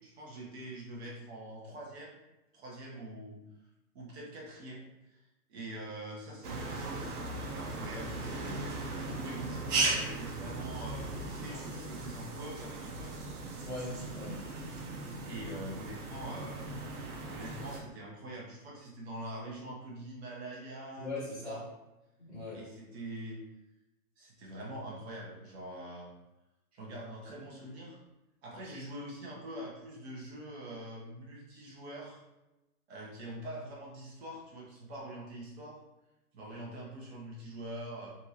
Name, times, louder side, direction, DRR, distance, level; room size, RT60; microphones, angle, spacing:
voice 1, 0.0-2.1 2.5-3.4 3.9-5.2 5.5-8.7 9.0-13.2 13.9-14.1 15.2-16.7 17.3-21.6 22.5-23.4 24.2-26.1 26.7-28.0 28.4-32.2 32.9-35.8 36.3-38.1, right 1 dB, 45° right, -3 dB, 1.0 m, -44 dB
sound 1, 6.4-17.8, right 2 dB, 75° right, 0.8 m, -37 dB
voice 2, 13.6-14.4 21.0-21.6 22.2-22.7, left 2 dB, 5° left, -24 dB, 0.4 m, -40 dB
2.7 x 2.5 x 2.7 m, 1.0 s
hypercardioid pair, 145°, 46 cm